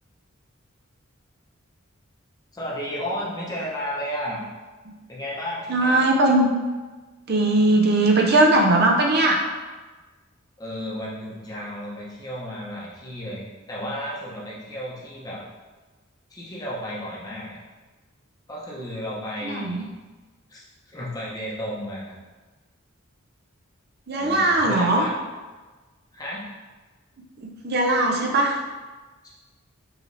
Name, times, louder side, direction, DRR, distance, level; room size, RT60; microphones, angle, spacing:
voice 1, 2.5-4.4 5.1-6.1 10.6-15.4 16.3-17.6 18.5-19.9 20.5-20.6 20.9-22.1 24.2-25.1 26.1-26.5 29.2-29.3, equal, 20° left, -6 dB, 0.9 m, -33 dB
voice 2, 5.7-6.5 7.3-9.4 19.4-19.8 24.1-25.1 27.4-28.6, right 2 dB, 50° right, 1 dB, 0.6 m, -19 dB
4.8 x 3.2 x 2.7 m, 1.3 s
head